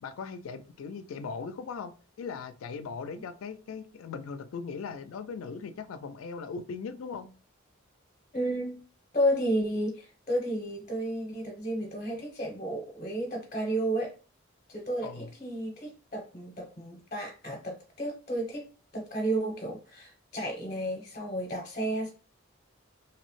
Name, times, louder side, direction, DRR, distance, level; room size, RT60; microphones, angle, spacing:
voice 1, 0.0-1.9 2.2-7.3 15.0-15.3, left 5 dB, 90° left, 0.4 m, -39 dB
voice 2, 8.3-8.8 9.1-14.1 14.7-18.7 18.9-22.1, right 1 dB, 35° left, 0.6 m, -32 dB
2.8 x 2.0 x 3.0 m
head